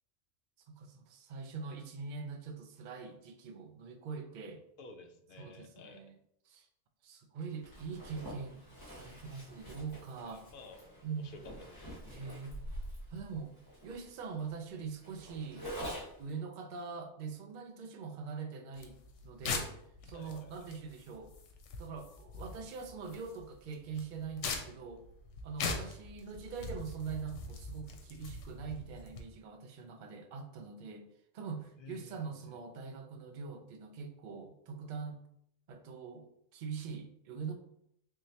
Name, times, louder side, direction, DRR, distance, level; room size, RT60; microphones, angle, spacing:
voice 1, 0.7-4.6 5.4-6.1 6.5-6.7 7.0-10.4 11.0-11.4 12.1-12.6 13.1-13.6 13.8-15.7 16.2-19.7 20.1-21.3 21.8-25.1 25.4-31.1 31.3-35.2 35.7-37.5, right 5 dB, 60° right, 6 dB, 0.5 m, -43 dB
voice 2, 4.8-6.0 10.3-10.9 11.2-11.4 11.7-11.8 12.2-12.3 20.1-20.7 31.8-32.6, left 3 dB, 60° left, 5 dB, 0.6 m, -53 dB
Zipper (clothing), 7.6-16.3, equal, 20° left, 1.3 m, -46 dB
sound 1, 18.8-29.2, left 4 dB, 80° left, 0.9 m, -42 dB
3.6 x 3.1 x 2.7 m, 0.74 s
omnidirectional pair, 1.2 m